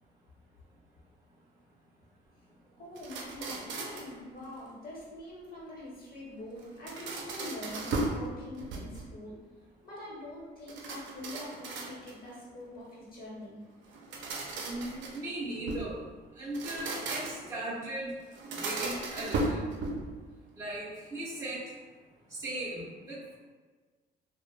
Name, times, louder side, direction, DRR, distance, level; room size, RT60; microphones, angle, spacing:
voice 1, 2.8-9.4 9.8-13.6, left 1 dB, 50° left, -5 dB, 1.0 m, -44 dB
sound 1, 3.0-4.2 6.6-8.2 8.6-9.2 10.7-12.3 13.9-15.9 16.4-17.6 18.3-20.2, right 2 dB, 70° right, 0.5 m, -36 dB
voice 2, 14.6-16.0 16.4-18.2 18.6-19.6 20.6-21.6 22.4-23.3, right 1 dB, 20° right, -8 dB, 0.5 m, -38 dB
2.2 x 2.0 x 3.2 m, 1.4 s
cardioid pair, 90°, 20 cm